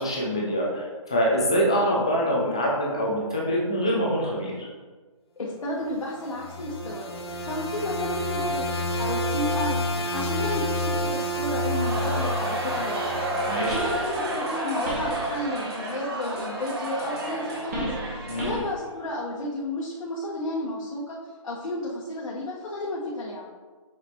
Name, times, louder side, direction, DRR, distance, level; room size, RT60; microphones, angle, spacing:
voice 1, 0.0-4.7 13.4-13.8 18.3-18.5, equal, 10° left, -4 dB, 0.4 m, -25 dB
voice 2, 5.4-7.1 7.4-8.7 9.0-13.1 13.7-21.2 21.4-23.4, left 1 dB, 80° left, -5 dB, 1.3 m, -32 dB
sound 1, 6.1-14.3, equal, 45° left, 0.6 m, -29 dB
Crowd, 11.6-18.9, right 2 dB, 40° right, 1.1 m, -31 dB
sound 2, 13.4-15.9 16.2-18.8, right 1 dB, 25° right, 1.6 m, -36 dB
5.8 x 5.8 x 3.0 m, 1.4 s
hypercardioid pair, 175°, 18 cm